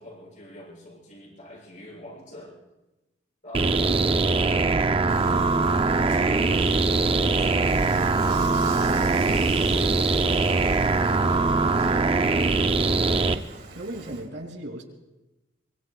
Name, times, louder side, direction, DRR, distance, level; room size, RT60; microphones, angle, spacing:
voice 1, 0.0-2.5 3.4-4.8 5.2-9.2 9.5-12.0, left 1 dB, 45° left, -4 dB, 7.1 m, -44 dB
sound 1, 3.5-13.4, right 3 dB, 30° right, 0.5 m, -22 dB
voice 2, 3.6-4.3 13.3-14.8, right 1 dB, 85° right, 1 dB, 3.0 m, -37 dB
Dishes pots and pans / Frying (food), 5.1-14.3, right 4 dB, 55° right, 2.4 m, -43 dB
25.5 x 23.5 x 2.4 m, 1.0 s
head